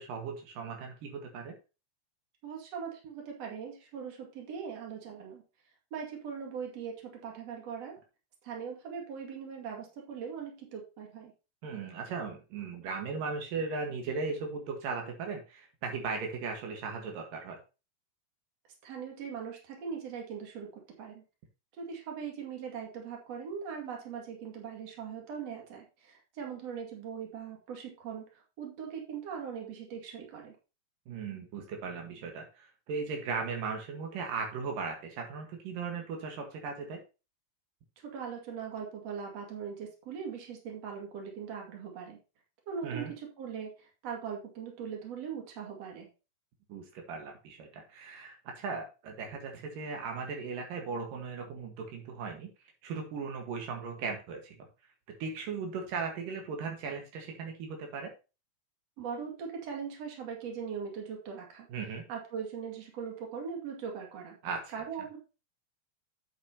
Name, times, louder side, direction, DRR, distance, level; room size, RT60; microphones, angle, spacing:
voice 1, 0.0-1.6 11.6-17.6 31.1-37.0 42.8-43.1 46.7-52.5 52.8-54.7 55.2-58.1 61.7-62.0 64.4-64.7, right 5 dB, 85° right, 2 dB, 3.3 m, -37 dB
voice 2, 2.4-5.4 5.9-8.0 8.4-11.3 18.8-21.2 21.8-30.5 38.0-42.2 42.7-43.7 44.0-46.1 59.0-61.7 62.1-64.4 64.7-65.2, right 6 dB, 55° right, 1 dB, 3.3 m, -40 dB
9.5 x 8.4 x 2.9 m, 0.30 s
omnidirectional pair, 3.8 m